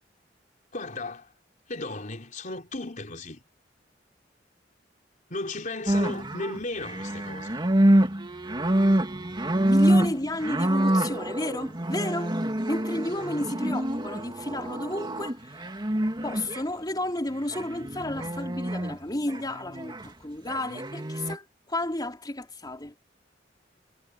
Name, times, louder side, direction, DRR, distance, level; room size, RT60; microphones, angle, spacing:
voice 1, 0.7-1.3 1.7-3.4 5.3-7.6, left 2 dB, 45° left, 3.9 m, -35 dB
sound 1, 5.9-16.6 17.5-19.0 19.3-20.1 20.5-21.4, right 1 dB, 25° right, 2.4 m, -26 dB
voice 2, 9.6-12.4 12.7-15.6 16.2-22.9, left 1 dB, 25° left, 3.6 m, -32 dB
head